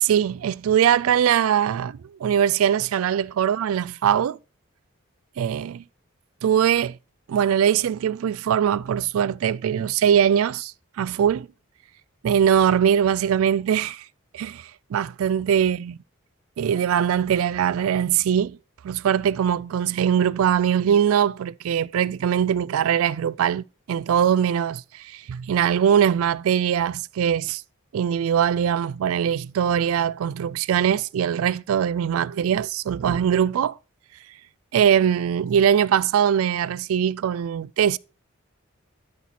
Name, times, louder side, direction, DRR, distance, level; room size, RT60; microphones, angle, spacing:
voice 1, 0.0-4.4 5.4-5.8 6.4-7.0 7.3-11.5 12.2-14.0 14.3-15.9 16.6-18.6 18.8-27.6 27.9-33.8 34.7-38.0, right 8 dB, 80° right, 0.3 m, -21 dB
12.5 x 4.4 x 4.2 m
head